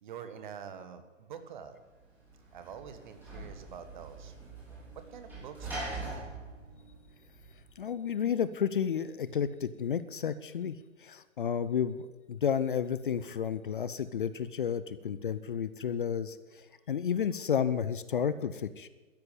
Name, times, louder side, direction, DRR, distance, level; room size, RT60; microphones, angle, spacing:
voice 1, 0.0-1.8 2.4-4.3 5.1-6.3 16.7-16.8, right 7 dB, 40° right, 9 dB, 1.7 m, -46 dB
Sliding door / Slam, 1.9-7.8, right 2 dB, 5° right, 6.4 m, -43 dB
voice 2, 7.8-18.9, left 8 dB, 40° left, 15 dB, 0.7 m, -32 dB
13.5 x 11.0 x 9.8 m, 1.2 s
figure-of-eight pair, 130°, 38 cm